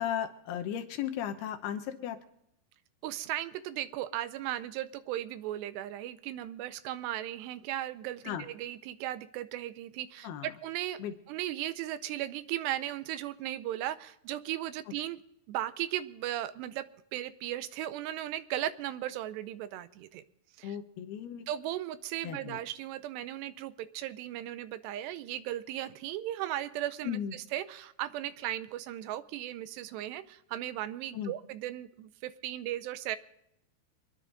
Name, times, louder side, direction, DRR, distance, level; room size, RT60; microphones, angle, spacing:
voice 1, 0.0-2.2 8.3-8.5 10.2-10.5 11.0-11.1 20.6-21.5 22.2-22.6 27.0-27.3 31.1-31.3, left 9 dB, 75° left, 7 dB, 2.8 m, -35 dB
voice 2, 3.0-11.0 11.3-15.2 15.5-16.9 17.1-20.2 20.6-20.8 21.5-33.2, right 13 dB, 80° right, 14 dB, 2.8 m, -36 dB
26.0 x 10.5 x 3.9 m, 0.78 s
omnidirectional pair, 5.0 m